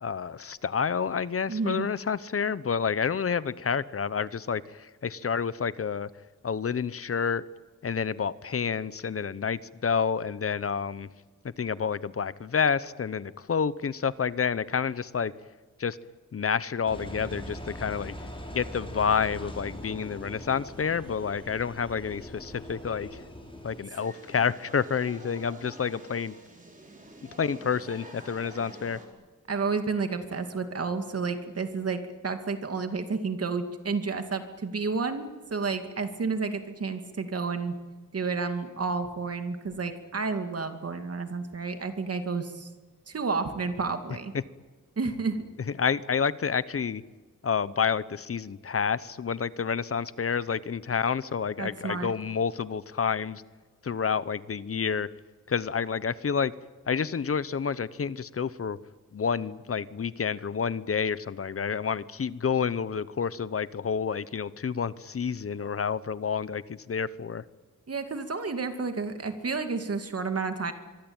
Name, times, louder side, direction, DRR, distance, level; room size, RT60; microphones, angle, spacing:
voice 1, 0.0-6.1 6.4-7.4 7.8-11.1 11.6-15.3 15.8-16.0 16.3-18.1 18.5-23.1 23.6-26.3 27.4-29.0 45.8-47.0 47.4-53.4 53.8-55.1 55.5-56.5 56.9-58.8 59.1-67.4, left 6 dB, 45° left, 17 dB, 0.8 m, -29 dB
voice 2, 1.5-1.9 29.5-37.7 38.1-42.7 43.1-44.3 45.0-45.4 51.6-52.1 67.9-70.7, right 4 dB, 50° right, 8 dB, 2.5 m, -31 dB
Engine, 16.9-23.9, left 1 dB, 15° left, 4.8 m, -41 dB
sound 1, 23.9-29.1, right 1 dB, 25° right, 5.0 m, -47 dB
25.0 x 22.5 x 8.9 m, 1.3 s
wide cardioid pair, 160°, 31 cm